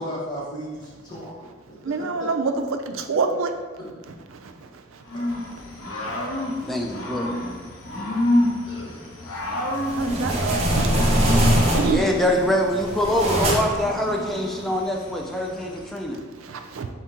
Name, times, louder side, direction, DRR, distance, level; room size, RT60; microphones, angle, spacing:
voice 1, 0.0-2.3 3.8-3.9 5.1-5.3 8.6-9.6, equal, 20° left, -5 dB, 0.9 m, -36 dB
voice 2, 1.8-2.5 2.9-3.5 4.3-4.7 6.0-6.3 9.9-12.1 16.4-16.9, right 4 dB, 80° right, 6 dB, 0.4 m, -27 dB
Growling / Cricket, 5.1-16.0, left 1 dB, 90° left, 0.8 m, -29 dB
voice 3, 6.6-7.6 11.9-16.2, left 1 dB, ahead, 0 dB, 0.3 m, -24 dB
sound 1, 9.7-12.2 12.7-13.9, right 1 dB, 30° right, 0.6 m, -22 dB
4.3 x 2.9 x 3.6 m, 1.4 s
head